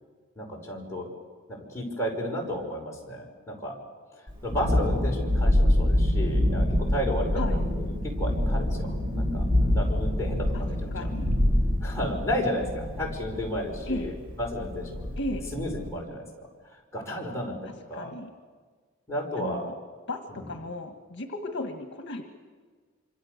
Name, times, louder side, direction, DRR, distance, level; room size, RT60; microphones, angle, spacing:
voice 1, 0.4-1.1 1.5-3.8 4.4-11.1 11.8-15.1 15.5-16.5 16.9-18.1 19.1-19.7 20.3-20.5, equal, 15° left, -2 dB, 5.5 m, -33 dB
Thunderstorm, 4.3-15.8, left 1 dB, 80° right, 7.9 m, -26 dB
voice 2, 10.9-11.3 13.9-14.1 15.2-15.5 17.9-18.3 19.4-19.7 20.1-20.2 20.5-22.2, left 1 dB, 60° left, 5 dB, 1.7 m, -34 dB
26.5 x 26.0 x 6.8 m, 1.5 s
head